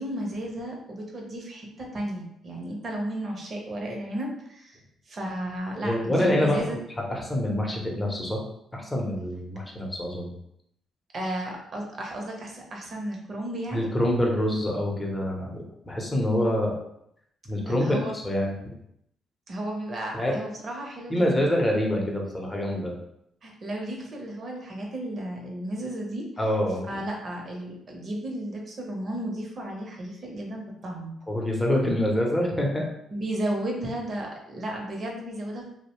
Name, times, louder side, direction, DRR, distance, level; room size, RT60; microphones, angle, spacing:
voice 1, 0.0-4.8 5.1-6.8 11.1-13.9 17.8-18.2 19.5-21.5 23.4-26.3 26.8-31.1 33.1-35.7, right 1 dB, 45° right, 0 dB, 0.7 m, -34 dB
voice 2, 5.7-6.8 7.1-8.4 8.7-10.3 13.7-16.7 17.5-18.6 20.1-20.3 21.1-22.9 26.4-27.0 31.3-32.8, left 1 dB, 15° left, -1 dB, 0.7 m, -26 dB
2.6 x 2.1 x 2.9 m, 0.76 s
cardioid pair, 90°, 0 cm